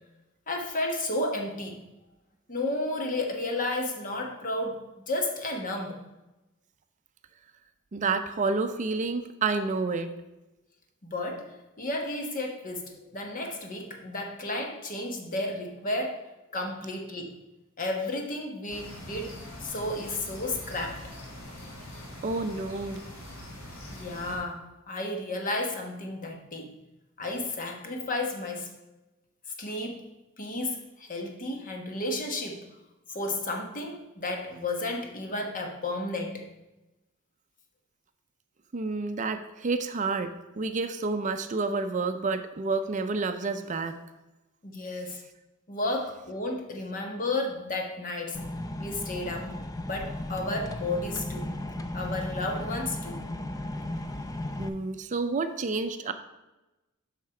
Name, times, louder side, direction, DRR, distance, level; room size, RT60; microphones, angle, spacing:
voice 1, 0.5-1.8 2.5-6.0 11.0-16.3 16.5-17.3 17.8-21.1 23.9-26.7 27.2-28.7 29.6-30.0 30.4-32.7 33.1-36.5 44.6-45.2 45.7-48.4 48.8-49.5 49.8-51.5 51.9-53.3, left 2 dB, 40° left, 2 dB, 1.2 m, -32 dB
voice 2, 7.9-10.2 22.2-23.0 38.7-44.0 54.6-56.1, right 3 dB, 35° right, 9 dB, 0.5 m, -29 dB
sound 1, 18.7-24.4, left 1 dB, 75° left, 2.2 m, -43 dB
sound 2, 48.3-54.7, left 1 dB, 15° left, 0.5 m, -35 dB
7.5 x 5.7 x 4.8 m, 1.0 s
head